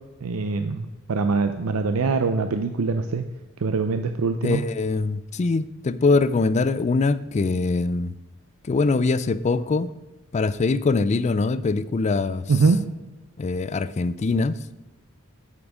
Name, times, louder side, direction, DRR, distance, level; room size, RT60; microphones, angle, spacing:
voice 1, 0.2-3.2 3.6-4.6 12.5-12.8, right 4 dB, 85° right, 7 dB, 0.5 m, -23 dB
voice 2, 4.4-8.1 8.7-9.9 10.3-12.4 13.4-14.6, left 3 dB, 30° left, 15 dB, 0.4 m, -23 dB
8.4 x 7.2 x 4.9 m, 1.1 s
head